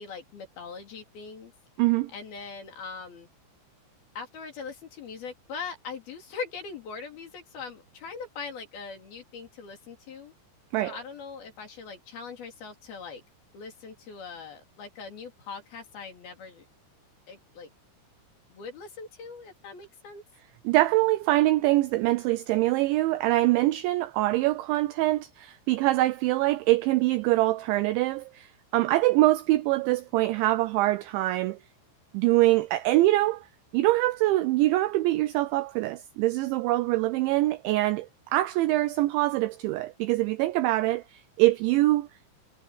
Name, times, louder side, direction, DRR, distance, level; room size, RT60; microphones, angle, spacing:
voice 1, 0.0-1.5 2.1-3.3 4.1-10.3 10.8-13.2 13.5-16.7 17.3-17.7 18.5-20.2, left 5 dB, 50° left, 4.9 m, -41 dB
voice 2, 1.8-2.1 10.7-11.0 20.7-31.6 32.1-33.5 33.7-42.1, right 17 dB, 85° right, 2.7 m, -24 dB
omnidirectional pair, 5.9 m